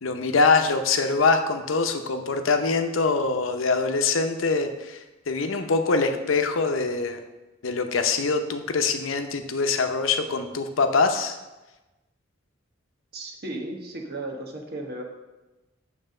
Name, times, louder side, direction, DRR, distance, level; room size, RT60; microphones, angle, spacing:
voice 1, 0.0-7.2 7.6-11.4, left 4 dB, 85° left, 6 dB, 0.7 m, -24 dB
voice 2, 13.1-15.0, right 2 dB, 50° right, 1 dB, 1.2 m, -35 dB
8.9 x 3.5 x 6.4 m, 1.1 s
head